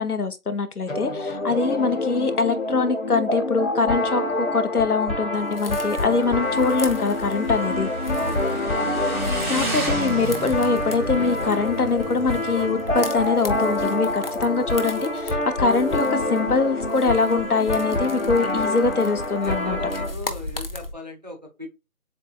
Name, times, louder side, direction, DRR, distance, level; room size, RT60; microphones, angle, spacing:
voice 1, 0.0-7.9 9.5-19.8, left 4 dB, 85° left, 1.0 m, -23 dB
sound 1, 0.9-20.1, left 2 dB, 60° left, 1.4 m, -26 dB
sound 2, 5.3-20.9, left 2 dB, 40° left, 0.6 m, -39 dB
Motorcycle / Engine, 5.6-14.8, right 2 dB, 75° right, 2.3 m, -34 dB
voice 2, 8.1-8.7 19.4-21.7, left 2 dB, 30° right, 0.6 m, -38 dB
7.4 x 2.6 x 2.4 m
figure-of-eight pair, 165°, 44 cm